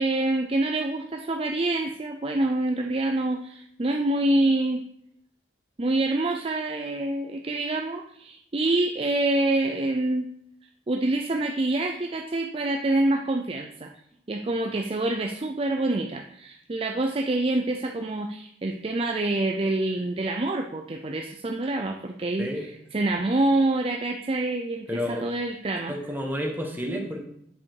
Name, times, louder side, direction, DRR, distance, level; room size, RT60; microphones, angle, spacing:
voice 1, 0.0-4.8 5.8-10.3 10.9-13.9 14.3-26.0, right 2 dB, 30° right, 4 dB, 0.5 m, -26 dB
voice 2, 22.4-22.7 24.9-25.2 25.9-27.2, equal, 10° right, 0 dB, 1.5 m, -30 dB
9.4 x 5.6 x 4.7 m, 0.71 s
head